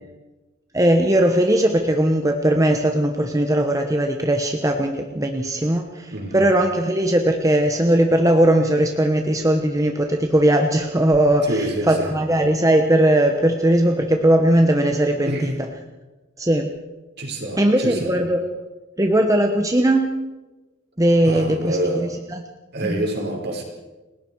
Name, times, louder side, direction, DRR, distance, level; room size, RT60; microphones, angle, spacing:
voice 1, 0.7-15.5 16.4-16.7 17.6-18.5 19.0-20.1 21.0-22.4 22.8-23.0, right 1 dB, 15° right, 4 dB, 1.1 m, -19 dB
voice 2, 6.1-6.5 11.4-12.2 15.2-15.5 17.2-18.2 21.2-22.1 22.7-23.6, right 1 dB, 50° right, 0 dB, 5.1 m, -27 dB
29.5 x 18.5 x 4.7 m, 1.1 s
head